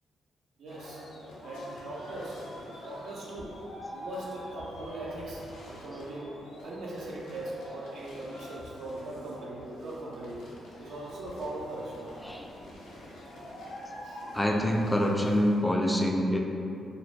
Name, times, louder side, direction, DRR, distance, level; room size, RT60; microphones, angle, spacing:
voice 1, 0.6-1.0 1.4-2.4 2.8-3.6 3.9-10.5 10.8-12.1 14.0-14.2, right 1 dB, 75° right, -4 dB, 0.5 m, -40 dB
sound 1, 0.7-15.6, left 1 dB, 85° left, 0.5 m, -45 dB
voice 2, 12.2-12.7 14.3-16.4, equal, 10° left, 1 dB, 0.3 m, -26 dB
2.5 x 2.1 x 3.0 m, 2.6 s
supercardioid pair, 50°, 0 cm